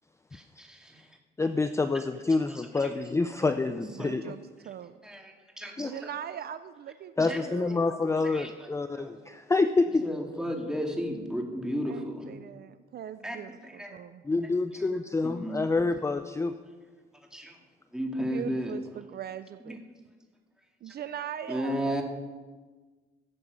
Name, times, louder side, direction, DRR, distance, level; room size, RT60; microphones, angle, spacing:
voice 1, 0.3-1.0 1.9-2.0 2.4-3.0 3.3-3.4 3.7-4.1 5.0-6.1 7.2-7.4 8.2-9.1 9.9-12.4 13.2-13.4 13.6-14.0 14.9-15.7 17.3-17.6 17.9-18.8 19.6-19.8 21.0-21.1 21.5-22.0, equal, 5° right, 1 dB, 2.1 m, -35 dB
voice 2, 1.4-4.4 5.8-5.9 7.2-10.0 14.2-16.6, left 3 dB, 15° left, 9 dB, 0.5 m, -27 dB
voice 3, 3.7-5.0 5.8-7.9 11.9-14.2 18.2-19.8 20.8-22.0, right 9 dB, 55° right, 12 dB, 0.5 m, -41 dB
16.0 x 7.1 x 5.3 m, 1.4 s
cardioid pair, 90°, 20 cm